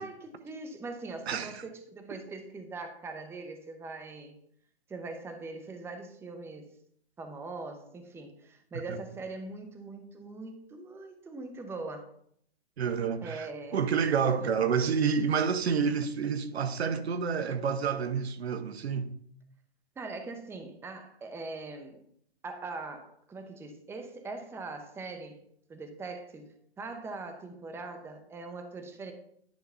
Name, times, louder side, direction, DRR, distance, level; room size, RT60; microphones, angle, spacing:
voice 1, 0.0-4.4 4.9-6.7 7.2-12.1 13.2-13.8 14.4-14.5 20.0-22.0 22.4-25.4 25.7-29.1, right 3 dB, 10° right, 0.7 m, -41 dB
voice 2, 12.8-13.5 13.7-19.1, right 6 dB, 75° right, 1.0 m, -28 dB
10.5 x 3.8 x 5.5 m
hypercardioid pair, 125°, 32 cm